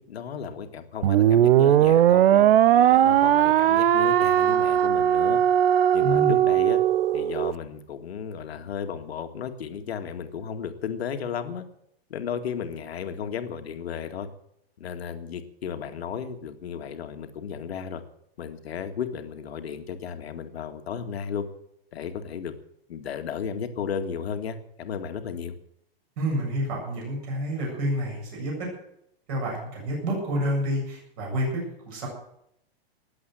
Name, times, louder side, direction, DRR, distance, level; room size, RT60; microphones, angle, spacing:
voice 1, 0.1-2.5 2.9-5.4 5.9-6.8 7.1-11.6 12.1-14.3 14.8-18.0 18.4-21.5 21.9-22.5 22.9-25.5, left 7 dB, 80° left, 7 dB, 2.1 m, -34 dB
sound 1, 1.0-7.5, right 11 dB, 65° right, 0.7 m, -19 dB
voice 2, 6.0-6.4 26.2-28.7 29.3-32.1, equal, 35° right, -2 dB, 7.7 m, -29 dB
19.5 x 8.0 x 9.0 m, 0.74 s
supercardioid pair, 175°, 31 cm